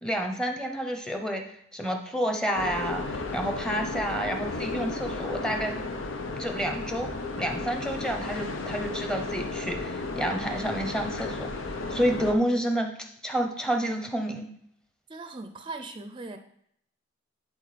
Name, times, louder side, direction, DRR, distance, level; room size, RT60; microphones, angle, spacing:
voice 1, 0.0-5.8 6.4-7.1 7.4-11.5 11.9-12.9 13.2-14.5, equal, 5° left, 4 dB, 0.8 m, -29 dB
sound 1, 2.5-12.3, left 3 dB, 85° left, 0.8 m, -34 dB
voice 2, 15.1-16.4, right 3 dB, 25° right, 7 dB, 0.5 m, -39 dB
10.5 x 4.0 x 4.2 m, 0.72 s
head